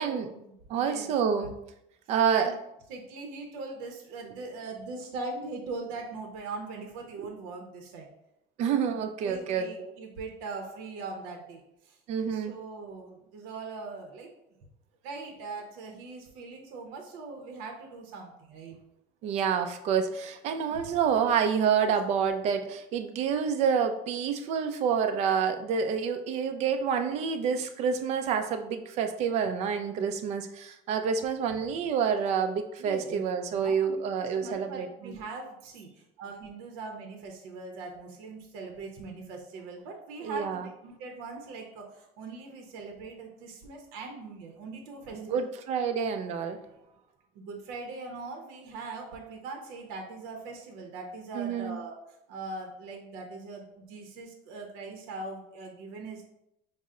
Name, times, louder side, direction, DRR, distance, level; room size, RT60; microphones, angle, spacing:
voice 1, 0.0-1.1 2.3-2.5 2.9-8.1 9.2-12.0 12.3-14.3 15.0-18.8 20.7-20.9 32.8-33.2 33.6-45.4 47.4-51.9 52.3-56.2, right 3 dB, 80° right, 2 dB, 0.7 m, -41 dB
voice 2, 0.7-1.6 2.1-2.5 8.6-9.9 12.1-12.5 19.2-35.1 40.2-40.7 45.1-46.6 51.3-51.8, right 7 dB, 45° right, 8 dB, 0.4 m, -28 dB
5.3 x 2.0 x 3.6 m, 0.81 s
cardioid pair, 165°, 16 cm